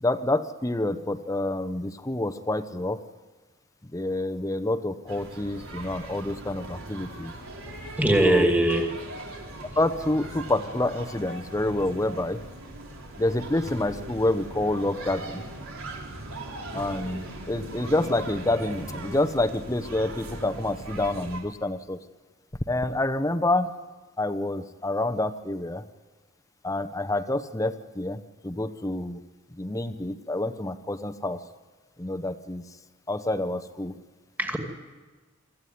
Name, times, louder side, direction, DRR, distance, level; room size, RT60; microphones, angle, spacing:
voice 1, 0.0-3.0 3.9-7.3 8.2-8.5 9.8-12.4 13.2-15.4 16.7-22.0 22.7-23.7 24.2-25.8 26.6-29.2 29.6-31.4 32.0-32.6 33.1-33.9, left 2 dB, 15° left, 0.9 m, -28 dB
sound 1, 5.1-21.4, right 1 dB, 75° right, 3.8 m, -39 dB
voice 2, 8.0-8.9 34.4-34.6, right 1 dB, 10° right, 2.4 m, -20 dB
25.0 x 14.5 x 9.5 m
head